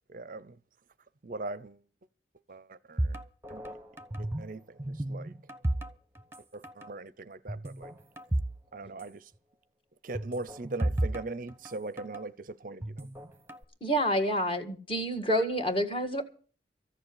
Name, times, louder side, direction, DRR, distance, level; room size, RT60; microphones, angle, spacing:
voice 1, 0.1-0.6 1.2-1.8 2.5-3.2 3.5-3.8 4.2-5.3 6.5-7.9 8.7-9.3 10.0-13.1, right 2 dB, 45° right, 0.6 m, -40 dB
sound 1, 3.0-4.5 4.8-6.4 6.6-6.9 7.5-8.6 8.9-9.0 10.2-12.2 12.8-13.6, right 1 dB, 15° right, 0.9 m, -33 dB
voice 2, 13.8-16.2, equal, 30° left, 1.8 m, -28 dB
14.5 x 7.1 x 9.6 m
head